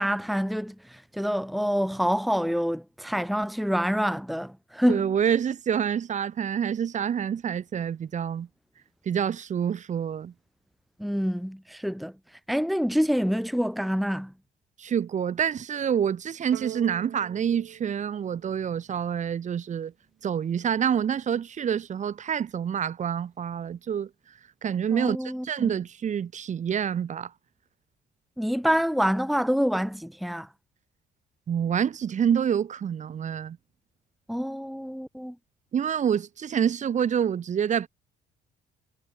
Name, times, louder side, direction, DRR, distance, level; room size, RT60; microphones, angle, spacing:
voice 1, 0.0-5.1 11.0-12.1 12.5-14.3 24.9-25.7 28.4-30.5 34.3-35.3, equal, ahead, 1.6 m, -27 dB
voice 2, 4.9-8.5 9.1-10.3 14.8-19.9 20.2-24.1 24.6-25.2 25.4-27.3 31.5-33.6 35.7-37.9, right 8 dB, 45° right, 5.4 m, -27 dB
sound 1, 16.5-19.1, right 16 dB, 75° right, 2.8 m, -43 dB
cardioid pair, 110°, 17 cm